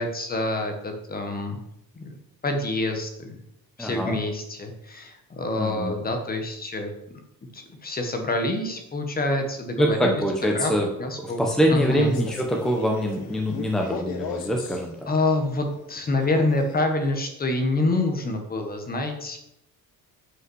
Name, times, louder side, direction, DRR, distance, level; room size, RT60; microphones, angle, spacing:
voice 1, 0.0-1.6 1.9-2.2 2.4-3.4 3.8-6.9 7.5-10.2 10.5-10.7 11.0-11.4 11.7-12.1 15.1-19.4, left 2 dB, 25° left, 5 dB, 1.4 m, -26 dB
voice 2, 3.8-4.2 5.5-5.9 9.8-10.9 11.2-15.1, equal, ahead, 1 dB, 0.9 m, -24 dB
Male speech man speaking, 11.7-14.9 16.2-16.9, left 5 dB, 75° left, 1.3 m, -35 dB
8.1 x 5.6 x 6.3 m, 0.80 s
cardioid pair, 170°, 36 cm